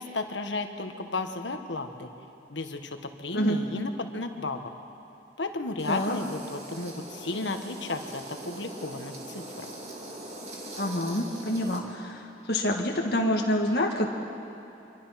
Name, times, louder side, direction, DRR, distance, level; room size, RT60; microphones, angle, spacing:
voice 1, 0.0-2.1 2.5-4.7 5.4-9.7, left 2 dB, 75° left, 6 dB, 1.5 m, -34 dB
sound 1, 5.8-11.8, right 1 dB, 35° right, 2.7 m, -42 dB
voice 2, 10.8-14.1, left 1 dB, 55° left, 0 dB, 1.8 m, -27 dB
25.5 x 24.0 x 5.9 m, 2.9 s
head